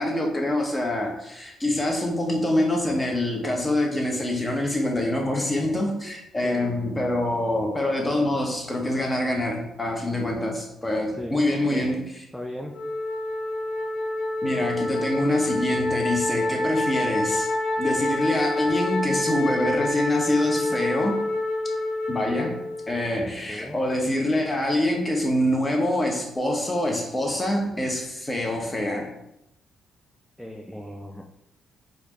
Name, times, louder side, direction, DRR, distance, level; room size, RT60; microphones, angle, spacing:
voice 1, 0.0-12.0 14.4-17.5 17.8-21.2 22.1-22.6 22.9-29.1, left 1 dB, 20° left, 1 dB, 0.9 m, -25 dB
voice 2, 11.2-11.9 12.3-12.7 23.5-23.8 30.4-31.2, left 1 dB, 5° left, 1 dB, 0.4 m, -36 dB
Wind instrument woodwind instrument, 12.7-23.1, left 1 dB, 70° left, 1.1 m, -27 dB
4.2 x 2.5 x 2.9 m, 0.84 s
cardioid pair, 90°, 0 cm